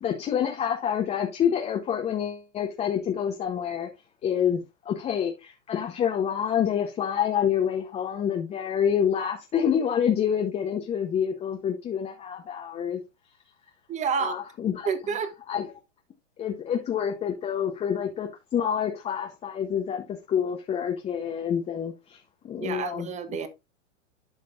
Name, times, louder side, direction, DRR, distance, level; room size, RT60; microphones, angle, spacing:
voice 1, 0.0-3.9 4.2-13.0 14.2-14.9 15.5-15.7 16.4-22.2 22.4-23.1, left 8 dB, 15° left, 0.8 m, -27 dB
voice 2, 13.9-14.3 14.8-15.3 22.6-23.5, right 6 dB, 20° right, 1.1 m, -29 dB
12.0 x 5.1 x 2.5 m
hypercardioid pair, 125°, 37 cm